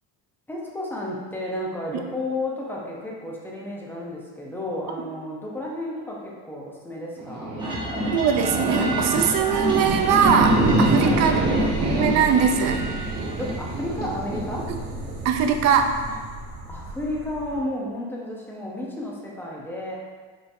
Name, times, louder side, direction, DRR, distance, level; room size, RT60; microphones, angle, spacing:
voice 1, 0.5-7.6 11.0-11.2 13.4-14.7 16.1-20.0, left 1 dB, 5° left, -3 dB, 0.7 m, -32 dB
sound 1, 7.2-17.6, right 1 dB, 90° right, 1.2 m, -26 dB
sound 2, 7.6-13.6, right 1 dB, 15° right, 1.0 m, -32 dB
voice 2, 8.1-11.4 11.9-12.8 14.7-14.8 15.2-15.9, right 7 dB, 55° right, 5 dB, 0.5 m, -21 dB
5.3 x 3.2 x 2.6 m, 1.5 s
cardioid pair, 140°, 32 cm